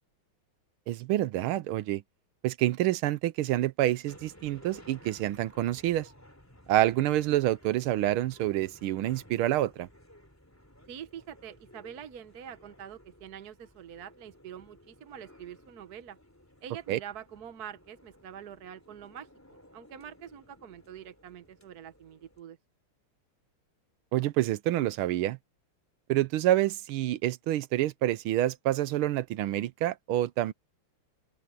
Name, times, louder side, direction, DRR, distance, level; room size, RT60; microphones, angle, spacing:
voice 1, 0.9-2.0 2.4-6.1 6.7-9.9 16.9-17.0 24.1-25.4 26.1-30.5, right 14 dB, 80° right, 1.5 m, -27 dB
sound 1, 4.1-22.4, left 1 dB, 5° left, 3.5 m, -57 dB
voice 2, 10.9-16.2 16.6-22.6, right 9 dB, 55° right, 1.3 m, -45 dB
open air
omnidirectional pair, 2.4 m